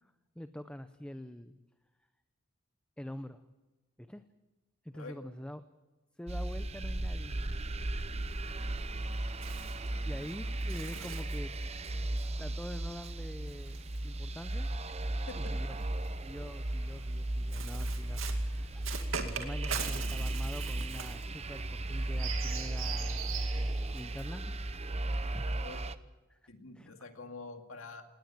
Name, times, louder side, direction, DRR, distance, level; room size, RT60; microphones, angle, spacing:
voice 1, 0.0-1.6 3.0-3.4 4.0-4.3 4.8-5.6 6.1-7.7 8.6-9.2 9.8-11.6 12.4-14.7 15.3-15.8 16.2-18.9 19.2-25.5 26.3-26.9, left 1 dB, 5° left, 10 dB, 0.6 m, -46 dB
sound 1, 6.3-25.9, right 1 dB, 30° right, 0.8 m, -35 dB
Bird, 8.2-14.7 15.6-24.4, right 7 dB, 70° right, 2.4 m, -43 dB
voice 2, 25.5-25.8 26.5-28.0, left 3 dB, 75° left, 5 dB, 2.3 m, -46 dB
19.0 x 18.5 x 8.9 m, 1.1 s
head